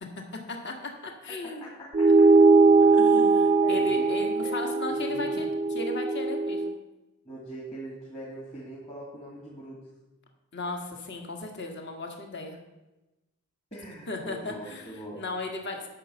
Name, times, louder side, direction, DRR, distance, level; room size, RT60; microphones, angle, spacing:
voice 1, 0.5-1.7 2.8-6.7 10.5-12.6 14.1-15.9, left 2 dB, 50° left, 3 dB, 1.6 m, -36 dB
voice 2, 1.6-2.3 3.6-4.1 4.4-4.5 4.9-5.4 7.2-9.8 13.7-15.2, right 1 dB, 30° left, -6 dB, 2.3 m, -42 dB
sound 1, 1.9-6.8, right 3 dB, 25° right, 0.3 m, -21 dB
8.9 x 6.2 x 7.7 m, 1.0 s
head